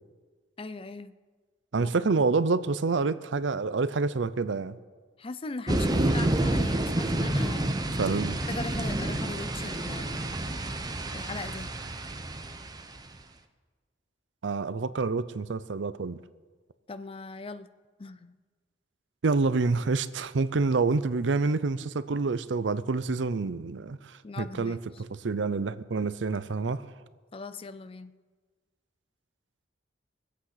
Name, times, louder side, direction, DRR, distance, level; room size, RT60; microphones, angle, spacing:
voice 1, 0.6-1.1 1.8-1.9 5.2-7.8 8.5-10.3 11.1-11.7 16.9-17.7 18.0-18.4 24.2-24.8 27.3-28.1, left 3 dB, 30° left, 0.5 m, -39 dB
voice 2, 1.7-4.8 8.0-8.4 14.4-16.2 19.2-24.0 24.4-26.8, right 4 dB, 80° right, 0.6 m, -27 dB
sound 1, 5.7-13.2, right 1 dB, 20° right, 0.8 m, -29 dB
22.0 x 8.3 x 5.8 m
head